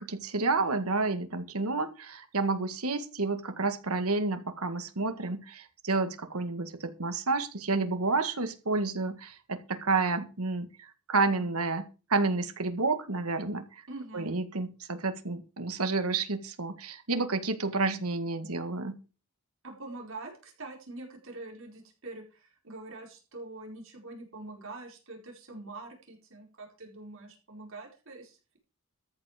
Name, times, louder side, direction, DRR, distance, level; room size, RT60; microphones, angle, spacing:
voice 1, 0.0-13.8 14.1-19.0, right 3 dB, 80° right, 9 dB, 1.8 m, -30 dB
voice 2, 13.9-14.4 19.6-28.6, right 2 dB, 60° right, 1 dB, 4.5 m, -44 dB
13.5 x 9.1 x 5.0 m, 0.33 s
head